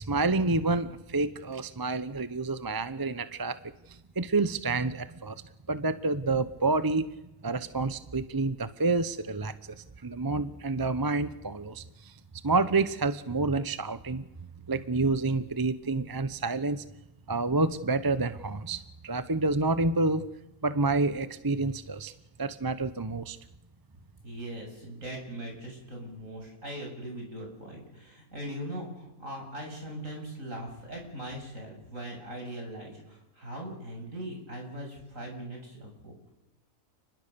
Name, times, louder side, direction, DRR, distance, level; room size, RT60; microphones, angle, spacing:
voice 1, 0.0-3.6 3.9-5.4 5.7-7.1 7.4-12.1 12.4-14.3 14.7-16.9 17.3-20.2 20.6-22.1 22.4-23.4, right 3 dB, 20° right, 13 dB, 0.8 m, -28 dB
voice 2, 24.2-36.3, right 1 dB, 65° right, 1 dB, 8.0 m, -40 dB
30.0 x 20.5 x 6.9 m, 0.96 s
omnidirectional pair, 1.5 m